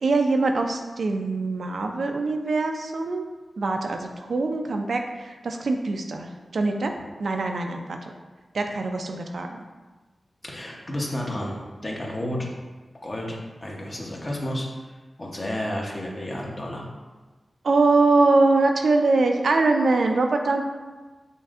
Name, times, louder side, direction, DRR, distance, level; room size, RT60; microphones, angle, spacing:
voice 1, 0.0-3.2 3.6-6.9 7.2-8.0 8.5-9.6 17.6-20.6, right 3 dB, 75° right, 4 dB, 0.3 m, -23 dB
voice 2, 10.4-12.5 13.0-14.7 15.2-16.8, left 1 dB, 35° left, -2 dB, 0.8 m, -31 dB
5.5 x 2.6 x 2.4 m, 1.3 s
wide cardioid pair, 75°, 0 cm